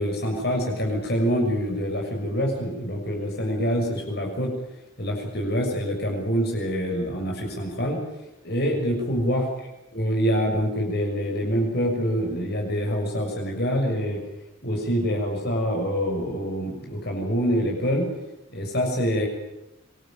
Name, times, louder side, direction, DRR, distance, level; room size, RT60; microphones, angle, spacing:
voice 1, 0.0-4.5 5.0-8.0 8.4-9.5 9.9-14.2 14.6-18.1 18.5-19.3, equal, 55° left, 1 dB, 6.7 m, -25 dB
26.0 x 20.5 x 9.0 m, 0.90 s
head